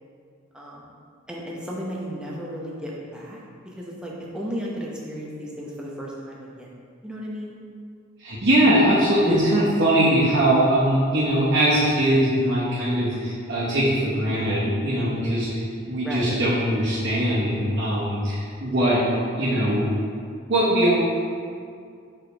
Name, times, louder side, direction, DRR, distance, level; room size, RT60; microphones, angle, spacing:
voice 1, 0.5-0.9 1.3-3.4 3.8-6.7 7.0-7.6 16.0-16.4, equal, 5° right, -4 dB, 0.8 m, -34 dB
voice 2, 8.2-19.0 19.4-19.9 20.5-20.9, right 1 dB, 55° right, -9 dB, 1.3 m, -21 dB
5.9 x 5.1 x 3.4 m, 2.3 s
head